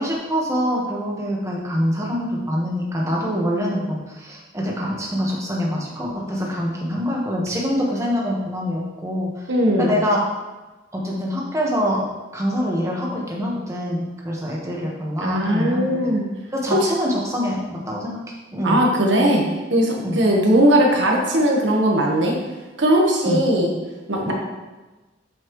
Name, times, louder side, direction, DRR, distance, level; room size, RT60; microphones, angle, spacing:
voice 1, 0.0-9.4 9.8-10.2 10.9-12.1 12.3-16.0 16.5-18.2 18.5-18.8 20.0-20.2 23.2-23.4 24.3-24.4, equal, 15° right, -3 dB, 1.4 m, -25 dB
voice 2, 9.5-9.9 15.2-16.2 16.7-16.9 18.6-19.4 19.7-22.3 22.8-23.7 24.1-24.3, right 1 dB, 75° right, -1 dB, 1.3 m, -18 dB
8.0 x 5.8 x 3.1 m, 1.2 s
head